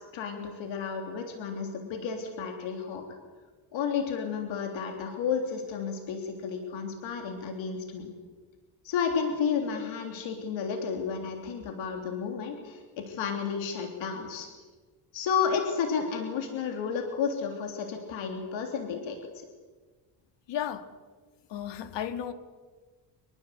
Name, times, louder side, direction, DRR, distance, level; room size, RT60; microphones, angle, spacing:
voice 1, 0.0-3.1 3.7-8.1 8.8-14.5 15.1-19.5, left 6 dB, 90° left, 3.4 m, -32 dB
voice 2, 20.5-20.8 21.5-22.3, left 9 dB, 70° left, 2.0 m, -33 dB
25.0 x 23.0 x 8.2 m
cardioid pair, 145°, 45 cm